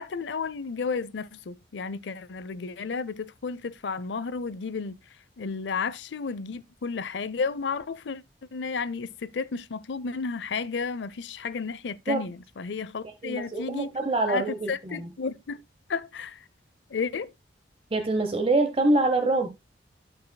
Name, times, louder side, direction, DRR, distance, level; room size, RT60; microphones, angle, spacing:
voice 1, 0.0-5.0 5.4-8.2 8.5-13.9 14.3-15.6 15.9-16.4 16.9-17.3, left 5 dB, 80° left, 0.5 m, -32 dB
voice 2, 13.2-15.1 17.9-19.5, right 2 dB, 30° right, 0.9 m, -25 dB
16.5 x 5.5 x 2.2 m
head